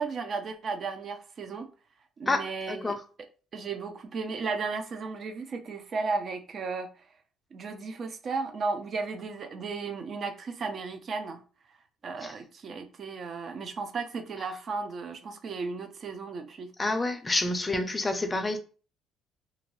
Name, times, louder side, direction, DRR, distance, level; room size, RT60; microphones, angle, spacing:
voice 1, 0.0-1.7 2.2-2.9 3.5-6.9 7.5-11.4 12.0-16.7, right 4 dB, 45° right, 0.5 m, -34 dB
voice 2, 16.8-18.6, left 2 dB, 20° left, 0.5 m, -28 dB
2.6 x 2.5 x 3.0 m
cardioid pair, 100°, 0 cm